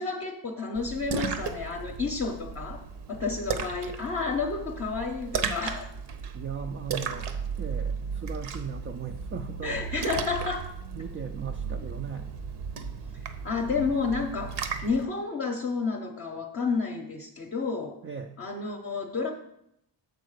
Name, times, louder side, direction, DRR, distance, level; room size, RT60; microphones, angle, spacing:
voice 1, 0.0-2.8 3.1-5.9 9.6-10.7 11.8-11.9 13.4-18.0 18.4-19.3, left 4 dB, 30° left, 1 dB, 0.7 m, -30 dB
Splash splatter, 0.7-15.0, right 6 dB, 65° right, 0.8 m, -35 dB
voice 2, 6.3-7.3 7.6-9.8 11.0-12.3 18.0-18.4, right 6 dB, 30° right, 3 dB, 0.4 m, -37 dB
8.0 x 3.9 x 6.5 m, 0.79 s
cardioid pair, 140°, 44 cm